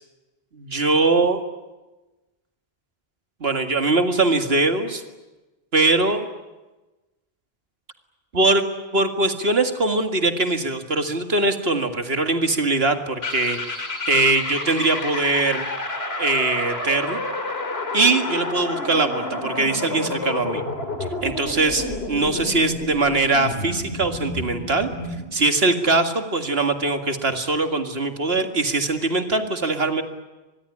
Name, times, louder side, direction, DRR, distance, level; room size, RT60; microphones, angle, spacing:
voice 1, 0.5-1.4 3.4-5.0 5.7-6.2 8.3-8.6 8.9-13.6 14.1-15.6 16.2-17.2 17.9-20.6 21.2-24.9 25.3-30.0, right 3 dB, 75° right, 7 dB, 2.2 m, -21 dB
sound 1, 13.2-25.3, left 2 dB, 80° left, 3.0 m, -30 dB
24.5 x 21.5 x 9.8 m, 1.1 s
omnidirectional pair, 1.0 m